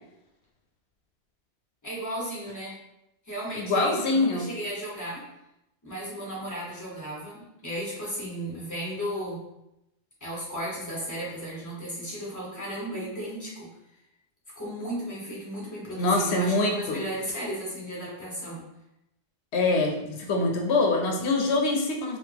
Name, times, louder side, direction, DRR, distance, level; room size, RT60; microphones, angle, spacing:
voice 1, 1.8-2.7 3.2-5.2 5.8-9.4 10.2-13.7 14.6-18.6, equal, 15° left, -6 dB, 1.3 m, -35 dB
voice 2, 3.6-4.5 16.0-17.0 19.5-22.2, left 2 dB, 85° left, 1 dB, 0.9 m, -24 dB
4.6 x 2.3 x 3.5 m, 0.87 s
omnidirectional pair, 1.1 m